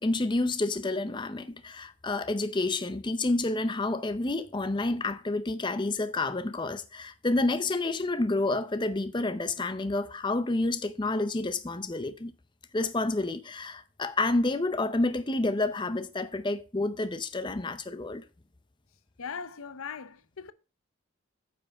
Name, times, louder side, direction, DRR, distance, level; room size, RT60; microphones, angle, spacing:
voice 1, 0.0-12.3 12.7-18.2, left 2 dB, 20° left, 0.5 m, -29 dB
voice 2, 19.2-20.5, left 6 dB, 75° left, 0.7 m, -39 dB
9.0 x 5.8 x 5.1 m
head